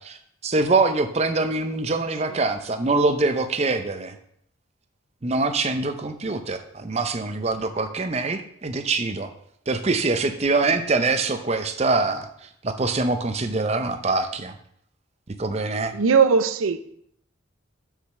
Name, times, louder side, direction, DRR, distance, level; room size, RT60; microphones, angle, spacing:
voice 1, 0.0-4.2 5.2-9.3 9.7-12.3 12.6-14.5 15.4-15.9, right 3 dB, 30° right, 0.5 m, -24 dB
voice 2, 15.9-16.8, right 5 dB, 90° right, 0.5 m, -18 dB
6.7 x 5.0 x 6.4 m
head